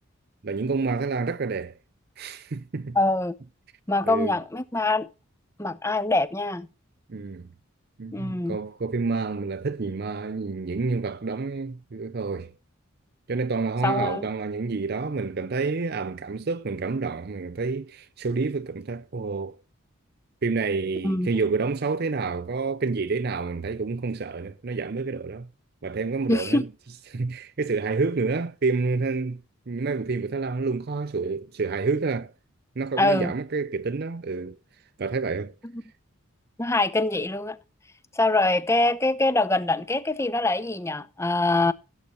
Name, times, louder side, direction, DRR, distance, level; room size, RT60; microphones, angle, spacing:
voice 1, 0.4-1.7 2.2-3.0 4.1-4.3 7.1-7.5 8.0-12.5 13.3-19.6 20.4-25.5 25.8-26.7 27.1-29.4 29.7-32.3 32.8-34.6 35.0-35.5, right 4 dB, 45° right, 0.5 m, -28 dB
voice 2, 2.9-3.3 3.9-5.1 5.6-6.7 8.1-8.6 13.8-14.3 21.0-21.3 26.3-26.6 33.0-33.3 36.6-37.6 38.1-41.7, left 2 dB, 15° left, 0.7 m, -24 dB
17.0 x 8.2 x 3.0 m
head